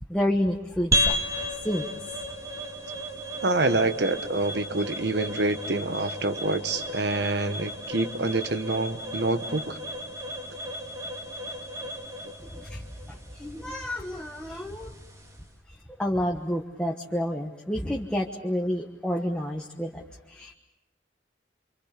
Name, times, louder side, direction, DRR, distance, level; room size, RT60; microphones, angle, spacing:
voice 1, 0.1-1.1 1.6-1.9 12.7-12.8 13.4-14.9 16.0-20.0 20.4-20.5, equal, 5° left, 0 dB, 1.2 m, -29 dB
sound 1, 0.9-15.5, equal, 20° right, 2.3 m, -34 dB
voice 2, 3.4-9.8, right 2 dB, 65° right, 10 dB, 1.3 m, -27 dB
27.5 x 25.5 x 6.7 m, 0.97 s
head